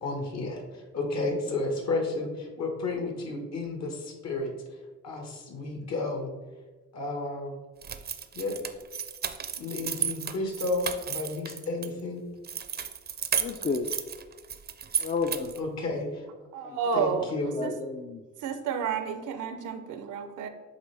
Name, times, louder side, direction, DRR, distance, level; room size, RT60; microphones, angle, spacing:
voice 1, 0.0-4.5 5.0-6.3 6.9-7.6 8.3-8.6 9.6-12.2 15.5-16.3 16.9-17.6, left 2 dB, 60° left, 3 dB, 1.4 m, -32 dB
sound 1, 7.8-11.9 12.4-15.6, right 7 dB, 35° right, 0.5 m, -33 dB
voice 2, 13.4-14.0 15.0-15.5 16.6-16.8 17.4-18.2, left 4 dB, 25° left, 6 dB, 0.3 m, -32 dB
voice 3, 16.5-17.3 17.6-17.7 18.4-20.5, right 6 dB, 85° right, 9 dB, 0.7 m, -30 dB
8.4 x 3.5 x 3.3 m, 1.3 s
cardioid pair, 90°, 30 cm